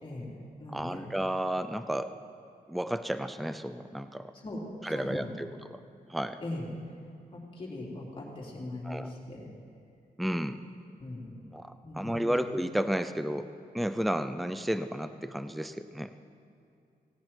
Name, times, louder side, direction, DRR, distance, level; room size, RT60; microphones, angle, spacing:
voice 1, 0.0-1.1 4.4-5.4 6.4-6.7 7.3-9.5 11.0-11.4 11.8-12.3, left 1 dB, 35° left, -4 dB, 3.5 m, -40 dB
voice 2, 0.7-2.1 2.7-4.3 4.8-5.8 6.1-6.4 8.8-9.1 10.2-10.6 11.5-16.1, equal, ahead, 11 dB, 0.5 m, -32 dB
18.5 x 17.0 x 4.5 m, 2.5 s
wide cardioid pair, 140°, 16 cm